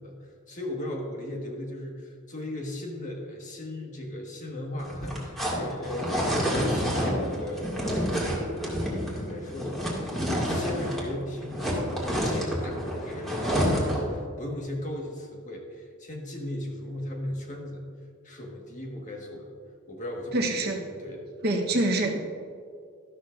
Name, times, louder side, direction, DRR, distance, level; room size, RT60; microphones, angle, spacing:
voice 1, 0.0-7.7 8.0-9.9 10.4-11.9 12.2-17.8 18.2-19.5 19.9-21.3 21.7-21.8, left 1 dB, 40° left, 0 dB, 1.5 m, -37 dB
sound 1, 4.8-11.1 11.4-14.1, equal, ahead, 2.1 m, -28 dB
voice 2, 20.3-20.8 21.4-22.2, right 2 dB, 50° right, 1 dB, 1.1 m, -25 dB
13.0 x 12.0 x 2.6 m, 2.2 s
head